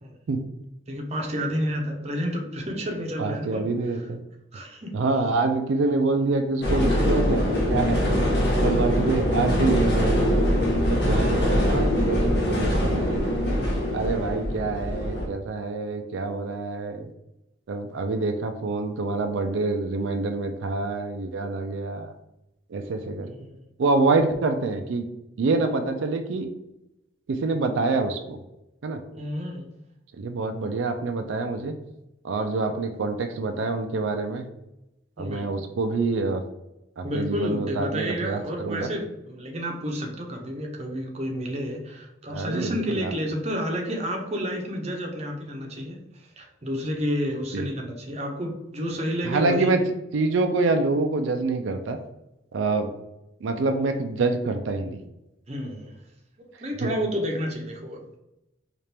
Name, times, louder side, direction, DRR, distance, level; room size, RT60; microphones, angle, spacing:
voice 1, 0.9-4.0 4.5-4.9 23.2-23.6 29.1-29.7 35.2-35.5 37.0-49.8 55.5-55.9 56.6-58.2, equal, 35° right, 1 dB, 0.7 m, -30 dB
voice 2, 3.2-4.2 4.9-8.3 8.6-10.4 10.9-13.2 13.9-17.1 17.7-22.1 22.7-23.3 23.8-25.0 25.4-26.5 27.3-28.4 28.8-29.0 30.2-31.7 32.2-34.4 35.2-36.4 37.0-38.9 42.3-43.1 47.5-47.7 49.2-49.8 50.1-52.0 52.5-52.9 53.4-55.0 56.8-56.9, right 3 dB, 80° right, 6 dB, 0.4 m, -26 dB
sound 1, 6.6-15.3, equal, 55° left, 0.9 m, -23 dB
4.3 x 2.5 x 3.3 m, 0.89 s
head